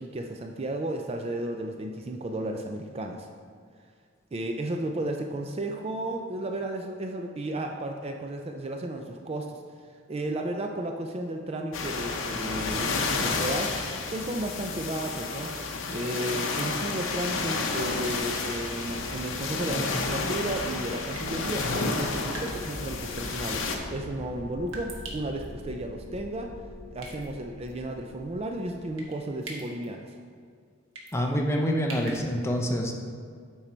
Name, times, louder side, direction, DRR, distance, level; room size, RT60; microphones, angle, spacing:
voice 1, 0.0-3.3 4.3-9.6 10.1-15.5 15.9-26.5 26.9-30.2, right 1 dB, 30° right, 4 dB, 0.4 m, -33 dB
sound 1, 11.7-23.8, left 3 dB, 70° left, 0.8 m, -31 dB
sound 2, 17.1-29.4, left 1 dB, 60° right, 1.0 m, -43 dB
sound 3, 20.6-20.7 21.2-21.4 22.3-22.7 23.1-23.4 24.7-25.5 27.0-27.3 27.7-27.8 29.0-29.2 29.4-29.9 30.9-31.2 31.9-32.2, right 2 dB, 75° right, 1.3 m, -41 dB
voice 2, 31.1-33.0, equal, 15° left, 1 dB, 0.7 m, -26 dB
8.9 x 4.7 x 4.3 m, 2.1 s
head